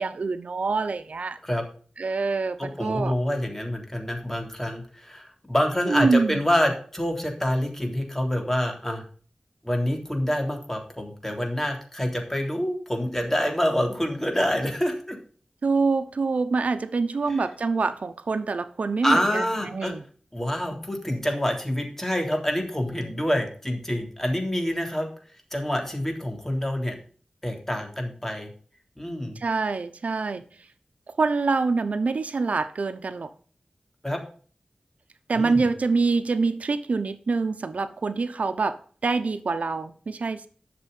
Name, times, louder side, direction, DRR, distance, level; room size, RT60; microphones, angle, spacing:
voice 1, 0.0-1.4 2.0-3.1 5.9-6.4 15.6-20.0 29.4-30.4 31.2-33.3 35.3-40.5, right 4 dB, 90° right, 0.8 m, -25 dB
voice 2, 2.6-9.0 9.6-15.2 17.3-17.4 19.0-19.9 20.3-25.1 25.5-27.0 27.4-28.5 29.0-29.4 34.0-34.2 35.3-35.7, equal, 15° left, 3.4 m, -27 dB
11.5 x 6.9 x 5.5 m
wide cardioid pair, 60°, 2 cm